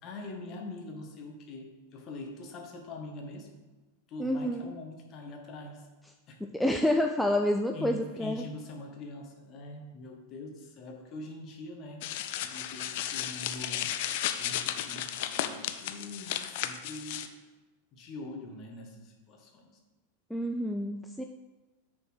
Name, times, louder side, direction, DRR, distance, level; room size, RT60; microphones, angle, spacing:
voice 1, 0.0-3.5 4.1-5.9 6.3-6.4 7.7-12.1 12.4-13.9 14.4-17.3 17.9-19.8, left 2 dB, 35° left, 0 dB, 1.7 m, -44 dB
voice 2, 4.2-4.7 6.5-8.4 20.3-21.2, left 1 dB, ahead, 3 dB, 0.4 m, -28 dB
sound 1, 12.0-17.3, left 11 dB, 50° left, 0.5 m, -34 dB
7.0 x 4.4 x 6.4 m, 1.2 s
figure-of-eight pair, 90°, 0 cm